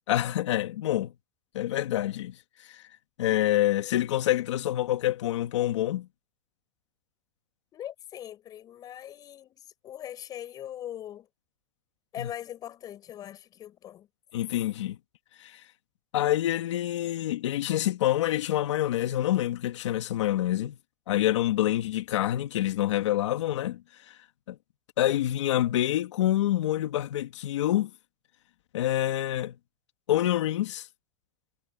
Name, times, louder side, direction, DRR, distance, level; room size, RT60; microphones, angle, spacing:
voice 1, 0.1-1.1 1.5-2.4 2.6-2.8 3.2-6.1 12.2-12.3 14.3-15.0 15.4-15.6 16.1-20.8 21.1-23.8 24.5-24.6 25.0-27.9 28.7-29.6 30.1-30.9, left 13 dB, 85° left, 2.2 m, -27 dB
voice 2, 7.7-11.3 12.1-14.1, left 11 dB, 25° left, 7.8 m, -41 dB
supercardioid pair, 160°, 15 cm